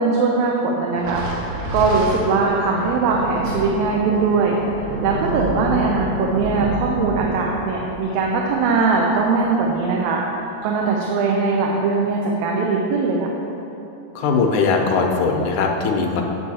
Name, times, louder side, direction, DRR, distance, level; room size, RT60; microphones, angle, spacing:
voice 1, 0.0-13.3, right 4 dB, 80° right, -1 dB, 2.1 m, -21 dB
Thunder, 1.0-9.7, right 1 dB, 65° right, 2.2 m, -29 dB
voice 2, 14.2-16.2, left 4 dB, 85° left, 2 dB, 2.3 m, -20 dB
8.2 x 7.0 x 4.2 m, 3.0 s
omnidirectional pair, 3.4 m